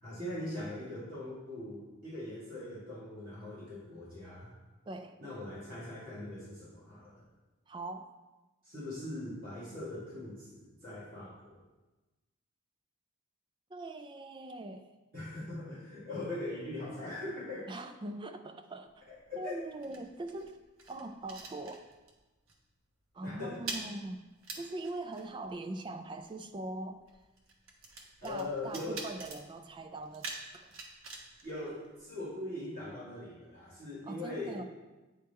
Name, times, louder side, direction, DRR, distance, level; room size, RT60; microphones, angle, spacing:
voice 1, 0.0-4.5 5.2-7.2 8.6-11.5 15.1-17.7 19.3-19.5 23.2-23.6 28.2-29.0 31.4-34.6, left 1 dB, 45° right, -10 dB, 2.2 m, -41 dB
voice 2, 4.9-5.2 7.7-8.1 13.7-14.9 17.7-19.1 19.4-20.6 20.9-21.9 23.1-24.2 24.5-27.0 28.2-30.8 34.1-34.6, right 2 dB, 20° right, 7 dB, 0.3 m, -42 dB
sound 1, 18.9-22.2 22.5-22.8 23.0-32.4, right 3 dB, 75° right, 1.0 m, -47 dB
8.9 x 3.5 x 4.3 m, 1.2 s
head